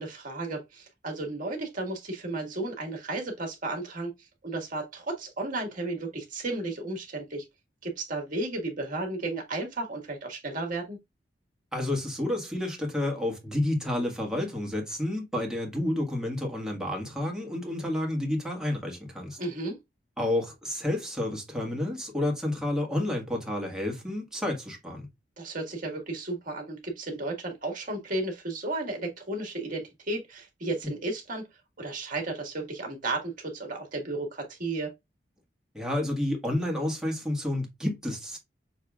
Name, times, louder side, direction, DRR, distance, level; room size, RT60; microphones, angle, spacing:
voice 1, 0.0-4.1 4.4-7.4 7.8-11.0 19.4-19.8 25.4-31.4 31.8-34.9, right 2 dB, 50° right, 1.7 m, -33 dB
voice 2, 11.7-19.4 20.2-25.1 35.7-38.4, left 1 dB, 5° right, 1.6 m, -30 dB
6.6 x 3.3 x 2.4 m
head